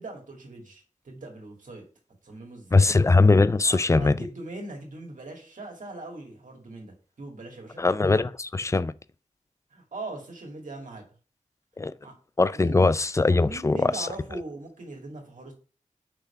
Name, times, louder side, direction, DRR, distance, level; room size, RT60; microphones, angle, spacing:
voice 1, 0.0-1.8 2.2-2.9 3.6-7.8 9.7-11.0 12.0-12.1 12.5-12.9 13.4-15.5, right 2 dB, 80° right, 2.1 m, -40 dB
voice 2, 2.7-4.2 7.8-8.9 11.8-11.9 12.4-14.1, left 3 dB, 25° left, 0.3 m, -21 dB
5.8 x 3.4 x 5.6 m
wide cardioid pair, 65°, 13 cm